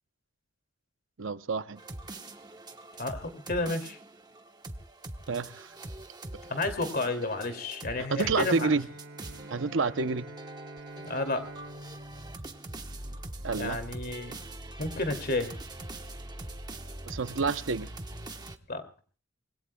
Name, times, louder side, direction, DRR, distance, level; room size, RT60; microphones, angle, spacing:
voice 1, 1.2-1.8 5.3-5.7 8.1-8.9 9.5-10.3 13.4-13.8 17.1-17.9, right 4 dB, 70° right, 0.7 m, -29 dB
sound 1, 1.8-18.6, right 2 dB, 20° right, 1.1 m, -43 dB
voice 2, 3.0-4.0 6.5-8.7 11.0-11.5 13.6-14.4 14.8-15.5 18.7-18.8, left 2 dB, 50° left, 2.5 m, -31 dB
Bowed string instrument, 8.2-13.6, right 1 dB, 90° right, 2.8 m, -47 dB
25.5 x 21.5 x 2.2 m
head